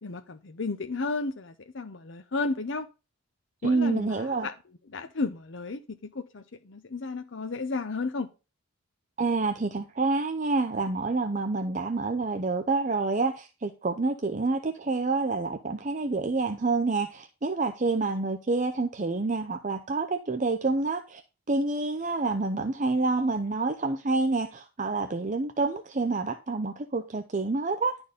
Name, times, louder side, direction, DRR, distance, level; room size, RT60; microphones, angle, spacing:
voice 1, 0.0-2.9 3.6-4.5 4.9-8.3, left 3 dB, 55° left, 7 dB, 0.7 m, -33 dB
voice 2, 3.6-4.5 9.2-21.2 21.5-28.0, right 3 dB, 35° right, 6 dB, 0.6 m, -28 dB
11.0 x 4.4 x 5.1 m, 0.30 s
head